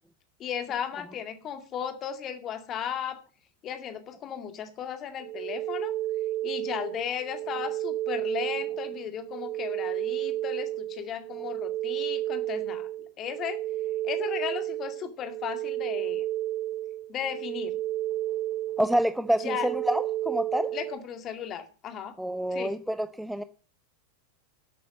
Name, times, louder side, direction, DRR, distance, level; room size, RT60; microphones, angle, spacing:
voice 1, 0.4-3.2 3.6-5.9 6.4-13.6 14.0-16.2 17.1-17.8 19.4-19.7 20.7-22.2 22.5-22.8, left 8 dB, 30° left, 2.2 m, -35 dB
sound 1, 5.2-21.0, right 14 dB, 40° right, 0.6 m, -32 dB
voice 2, 18.8-20.7 22.2-23.4, right 1 dB, ahead, 0.7 m, -27 dB
11.5 x 8.6 x 7.1 m
figure-of-eight pair, 90°, 0 cm